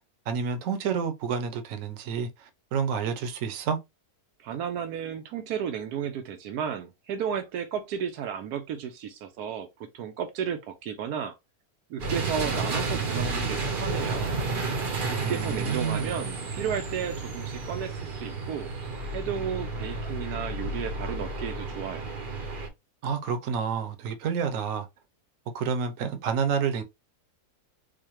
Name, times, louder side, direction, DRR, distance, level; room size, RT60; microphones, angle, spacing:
voice 1, 0.3-3.8 15.2-16.2 23.0-24.9 25.5-26.8, right 6 dB, 65° right, 1.0 m, -29 dB
voice 2, 4.4-9.7 9.9-11.3 11.9-14.4 15.1-18.7 19.1-22.1, right 8 dB, 85° right, 1.2 m, -33 dB
sound 1, 12.0-22.7, right 3 dB, 45° right, 0.7 m, -32 dB
4.8 x 2.2 x 2.9 m
omnidirectional pair, 1.6 m